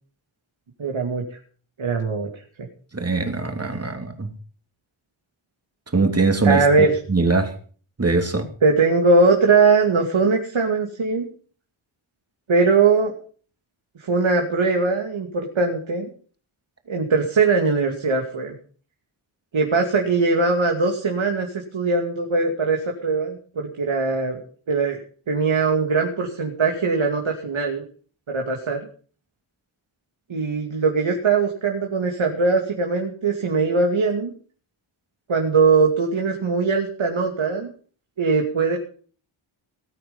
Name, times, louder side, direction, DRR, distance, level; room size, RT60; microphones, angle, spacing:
voice 1, 0.8-1.4 1.8-2.4 6.4-7.0 8.6-11.3 12.5-13.1 14.0-16.1 16.9-18.5 19.5-24.4 24.7-25.0 25.3-27.8 28.3-28.8 30.3-34.3 35.3-37.7 38.2-38.8, right 4 dB, 70° right, 2 dB, 2.7 m, -21 dB
voice 2, 2.9-4.3 5.9-7.5 8.0-8.5, right 3 dB, 30° right, 6 dB, 2.8 m, -22 dB
19.0 x 9.2 x 5.4 m, 0.42 s
wide cardioid pair, 120°, 49 cm